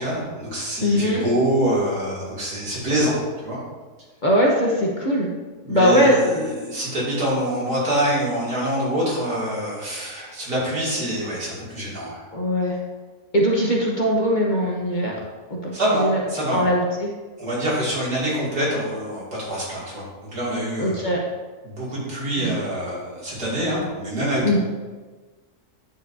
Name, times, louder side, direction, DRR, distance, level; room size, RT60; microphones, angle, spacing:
voice 1, 0.0-3.1 3.4-3.6 5.6-12.2 15.7-16.7 17.4-21.0 21.6-24.6, right 1 dB, 85° right, -7 dB, 3.2 m, -25 dB
voice 2, 0.8-1.2 4.2-5.3 5.7-6.5 12.3-12.8 13.3-15.1 15.5-16.2 16.5-17.1 20.8-21.2 22.4-22.6 24.4-24.6, equal, 35° left, -3 dB, 1.0 m, -20 dB
9.1 x 7.1 x 2.7 m, 1.3 s
omnidirectional pair, 1.6 m